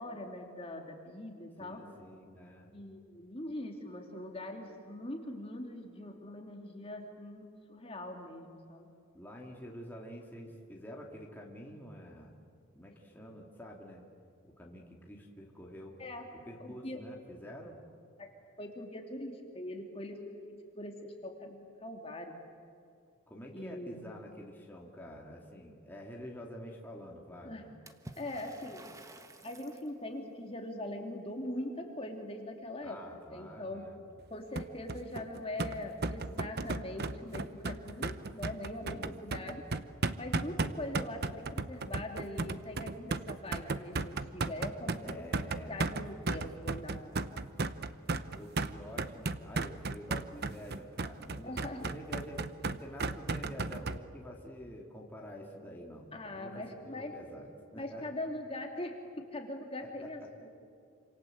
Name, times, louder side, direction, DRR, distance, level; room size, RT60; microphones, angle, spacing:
voice 1, 0.0-1.8 2.7-8.9 16.0-16.3 16.6-17.0 17.4-17.5 18.2-18.3 18.6-22.3 23.5-24.2 27.4-27.6 28.2-28.8 29.4-33.0 33.3-33.8 34.3-39.6 40.2-47.5 51.4-51.8 56.1-57.1 57.7-59.0 59.3-60.5, left 1 dB, 25° left, 2 dB, 2.7 m, -42 dB
voice 2, 1.6-2.7 9.1-12.3 12.7-14.0 14.4-16.0 16.5-17.8 23.3-27.7 32.8-34.0 38.8-39.7 45.0-45.8 48.3-51.5 51.8-58.0 59.8-60.1, equal, 10° left, -2 dB, 2.6 m, -48 dB
Water / Splash splatter, 27.9-29.9, right 1 dB, 15° right, 1.2 m, -51 dB
sound 1, 34.6-54.0, right 3 dB, 50° right, 0.8 m, -35 dB
28.0 x 26.5 x 7.9 m, 2.4 s
head